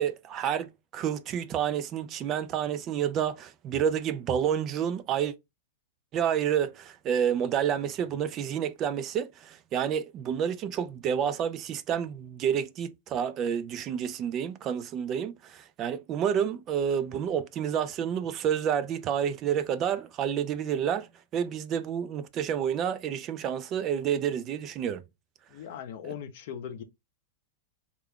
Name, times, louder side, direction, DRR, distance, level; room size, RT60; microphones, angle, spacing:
voice 1, 0.0-5.3 6.1-21.1 21.3-25.0, right 8 dB, 30° right, 0.4 m, -29 dB
voice 2, 25.5-26.8, left 8 dB, 60° left, 0.7 m, -39 dB
3.3 x 2.4 x 3.5 m
supercardioid pair, 140°, 0 cm